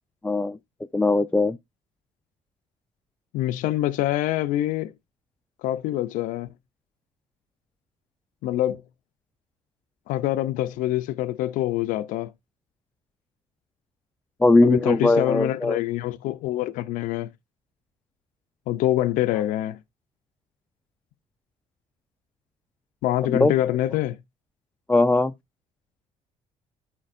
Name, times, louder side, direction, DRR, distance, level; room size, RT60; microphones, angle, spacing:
voice 1, 0.2-0.6 0.9-1.6 14.4-15.8 23.3-23.5 24.9-25.3, left 2 dB, 10° left, 0.3 m, -20 dB
voice 2, 3.3-4.9 5.6-6.5 8.4-8.8 10.1-12.3 14.6-17.3 18.7-19.8 23.0-24.2, left 14 dB, 85° left, 0.5 m, -25 dB
13.0 x 4.4 x 2.5 m
cardioid pair, 125°, 13 cm